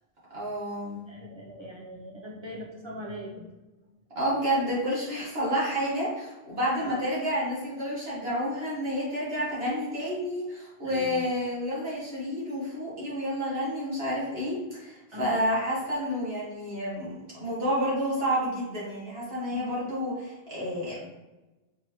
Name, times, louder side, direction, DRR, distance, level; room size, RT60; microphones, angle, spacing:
voice 1, 0.3-1.0 4.1-21.0, equal, 70° right, -7 dB, 1.7 m, -30 dB
voice 2, 1.1-3.5 6.8-7.0 10.8-11.3 15.1-15.4 19.5-19.7, left 1 dB, 35° right, -2 dB, 0.5 m, -41 dB
4.6 x 2.9 x 2.8 m, 1.1 s
omnidirectional pair, 1.0 m